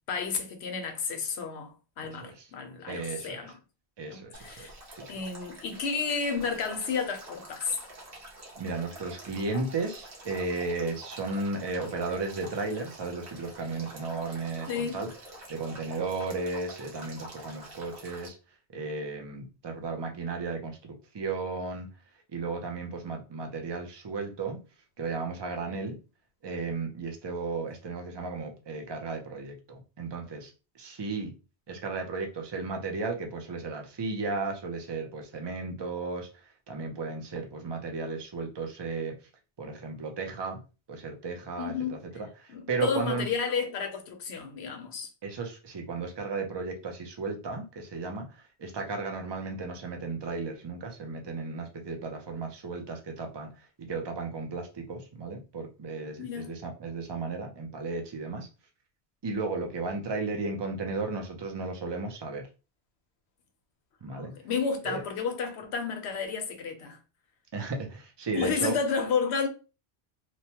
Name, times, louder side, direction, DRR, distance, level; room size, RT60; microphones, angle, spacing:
voice 1, 0.1-3.6 4.1-4.7 5.1-7.8 14.7-15.0 41.6-42.0 42.5-45.1 56.2-56.5 64.1-67.0 68.3-69.5, left 5 dB, 80° left, 0.9 m, -31 dB
voice 2, 2.0-2.5 2.9-3.4 4.0-5.1 8.6-15.1 15.5-18.4 18.7-21.9 22.3-24.6 25.0-26.0 26.4-30.5 30.8-31.3 31.7-36.3 36.7-39.1 39.6-40.6 40.9-43.3 45.2-53.5 53.8-58.5 59.2-62.5 64.0-64.3 64.8-65.0 67.5-68.8, right 3 dB, 35° right, 0.4 m, -34 dB
Male speech man speaking / Stream / Trickle dribble, 4.3-18.3, right 1 dB, 60° right, 1.2 m, -47 dB
2.9 x 2.1 x 2.8 m
omnidirectional pair, 1.1 m